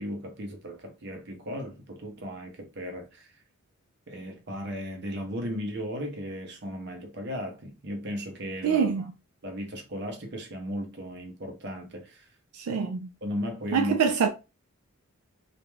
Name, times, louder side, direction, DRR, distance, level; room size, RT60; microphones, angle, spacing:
voice 1, 0.0-3.3 4.1-9.1 9.4-12.3 12.7-12.8 13.2-14.0, equal, 50° right, 0.7 m, -36 dB
voice 2, 8.6-9.0 12.5-13.1 13.7-14.3, right 6 dB, 80° right, 0.4 m, -25 dB
2.5 x 2.2 x 3.0 m
head